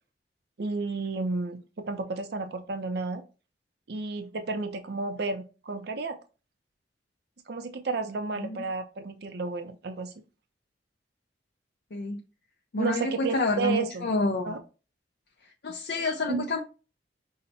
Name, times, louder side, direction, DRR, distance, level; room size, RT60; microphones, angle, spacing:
voice 1, 0.6-3.2 3.9-6.2 7.5-10.1 12.8-14.1 14.5-14.6 16.3-16.5, right 3 dB, 65° right, 0.5 m, -32 dB
voice 2, 11.9-12.2 12.7-14.6 15.6-16.6, left 2 dB, 60° left, 0.5 m, -28 dB
5.6 x 2.1 x 3.9 m
head